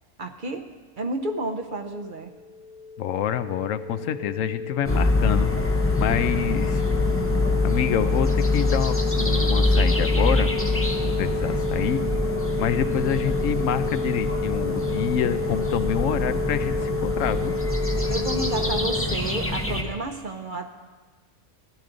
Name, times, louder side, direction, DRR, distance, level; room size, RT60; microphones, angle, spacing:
voice 1, 0.2-0.7 1.0-2.3 18.1-20.7, right 2 dB, 45° right, 5 dB, 0.8 m, -31 dB
sound 1, 2.0-19.0, left 3 dB, 40° left, 1.3 m, -30 dB
voice 2, 3.0-6.8 7.6-10.5 11.2-12.0 12.6-17.5, left 9 dB, 85° left, 12 dB, 1.0 m, -27 dB
sound 2, 4.8-19.8, left 2 dB, 15° left, 0.6 m, -25 dB
16.5 x 12.0 x 3.9 m, 1.3 s
omnidirectional pair, 1.3 m